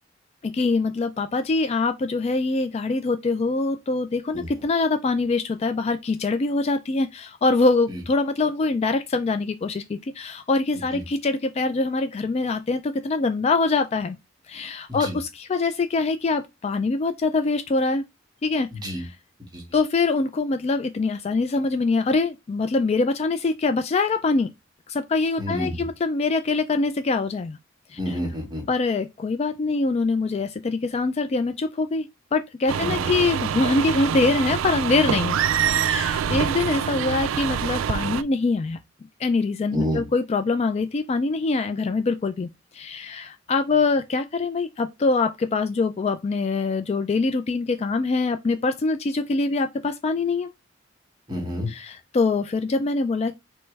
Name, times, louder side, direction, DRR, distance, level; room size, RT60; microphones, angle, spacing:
voice 1, 0.4-14.2 14.5-18.0 18.4-18.7 19.7-24.5 24.9-27.6 27.9-28.0 28.7-32.1 32.3-35.4 35.7-38.8 39.2-50.5 51.7-53.3, left 3 dB, 35° left, 0.3 m, -24 dB
voice 2, 18.7-19.1 19.5-19.6 25.4-25.9 28.0-28.6 32.8-33.1 36.3-36.4 39.7-40.0 51.3-51.7, equal, 20° right, 1.5 m, -29 dB
sound 1, 32.7-38.2, right 8 dB, 80° right, 0.3 m, -25 dB
3.2 x 3.0 x 4.6 m
head